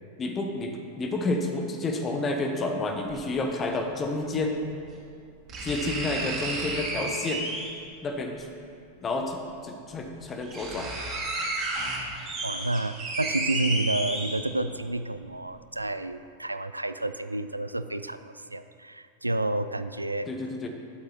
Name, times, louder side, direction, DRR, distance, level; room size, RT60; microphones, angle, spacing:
voice 1, 0.2-4.6 5.6-7.5 8.0-8.5 9.0-10.9 20.3-20.7, left 2 dB, 25° left, 3 dB, 1.1 m, -30 dB
sound 1, 3.1-3.2 4.6-4.7 5.5-7.9 9.2-9.3 10.0-10.1 10.3-14.7 15.2-15.3, right 2 dB, 30° right, 2.6 m, -32 dB
voice 2, 12.4-20.3, right 2 dB, 85° right, 11 dB, 0.4 m, -30 dB
12.5 x 7.9 x 4.1 m, 2.4 s
figure-of-eight pair, 90°, 0 cm